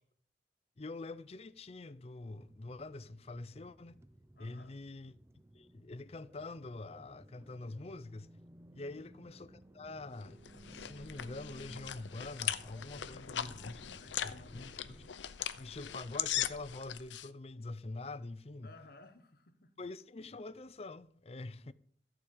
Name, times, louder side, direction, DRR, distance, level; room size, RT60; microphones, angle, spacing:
voice 1, 0.8-3.9 4.4-5.1 5.5-8.3 8.7-10.4 10.7-13.8 14.2-15.1 15.6-18.7 19.8-21.7, left 2 dB, 35° left, 0.5 m, -45 dB
sound 1, 2.2-15.1, right 1 dB, 15° right, 0.5 m, -58 dB
voice 2, 4.3-4.8 8.7-9.1 13.0-14.6 18.6-19.7 21.5-21.7, left 2 dB, 55° left, 1.3 m, -58 dB
sound 2, 10.2-17.3, left 10 dB, 80° left, 0.6 m, -40 dB
14.5 x 5.0 x 8.5 m
head